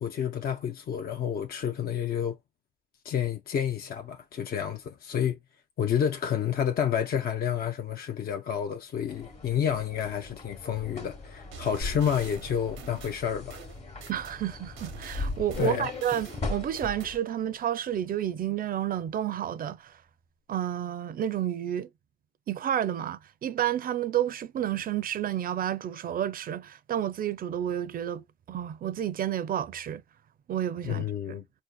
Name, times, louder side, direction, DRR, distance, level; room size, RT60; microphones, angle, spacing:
voice 1, 0.0-2.4 3.0-5.4 5.8-13.6 15.6-15.9 30.8-31.4, left 8 dB, 50° left, 0.5 m, -29 dB
sound 1, 9.1-17.2, left 3 dB, 35° left, 1.0 m, -39 dB
sound 2, 11.5-14.4 14.8-17.1, right 7 dB, 90° right, 0.7 m, -46 dB
voice 2, 14.1-20.0 20.5-21.9 22.5-30.0 30.5-31.4, right 10 dB, 45° right, 0.4 m, -30 dB
sound 3, 17.2-19.1 19.4-19.5, left 3 dB, 90° left, 1.3 m, -46 dB
4.5 x 2.6 x 2.2 m
cardioid pair, 90°, 20 cm